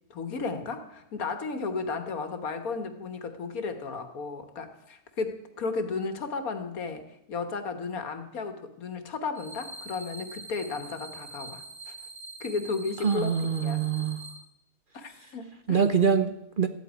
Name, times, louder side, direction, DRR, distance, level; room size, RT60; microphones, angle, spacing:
voice 1, 0.1-11.9 12.4-13.8 14.9-15.9, left 4 dB, 80° left, 8 dB, 1.9 m, -34 dB
sound 1, 9.4-14.3, right 2 dB, 90° right, 2.7 m, -44 dB
voice 2, 13.0-14.2 15.7-16.7, right 6 dB, 45° right, 9 dB, 0.8 m, -24 dB
14.5 x 8.3 x 9.3 m, 0.82 s
omnidirectional pair, 1.5 m